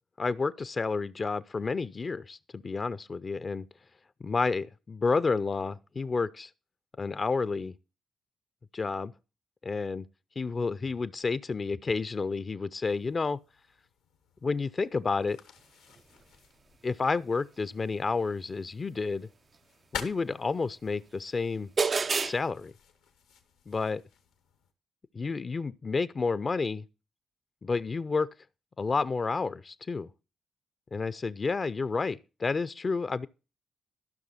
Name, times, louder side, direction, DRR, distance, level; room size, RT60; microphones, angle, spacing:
voice 1, 0.2-3.7 4.2-6.5 7.0-7.7 8.7-9.1 9.6-10.1 10.4-13.4 14.4-15.4 16.8-19.3 19.9-21.7 22.2-22.7 23.7-24.0 25.1-26.8 27.6-28.3 28.8-30.1 30.9-33.3, left 4 dB, 40° left, 0.5 m, -30 dB
sound 1, 12.8-24.7, left 7 dB, 85° left, 1.0 m, -49 dB
sound 2, 20.8-20.9 21.8-22.4, right 5 dB, 45° right, 0.4 m, -26 dB
13.5 x 6.0 x 4.2 m
hypercardioid pair, 45°, 0 cm